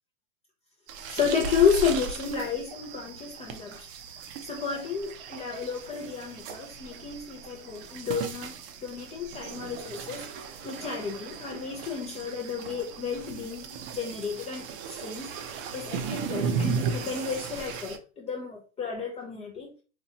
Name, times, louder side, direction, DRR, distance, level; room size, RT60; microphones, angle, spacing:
sound 1, 0.9-18.0, right 6 dB, 45° right, 0.7 m, -36 dB
voice 1, 1.1-3.9 4.4-8.5 8.8-19.7, left 6 dB, 15° left, 0.4 m, -31 dB
4.3 x 2.3 x 2.8 m
hypercardioid pair, 125°, 40 cm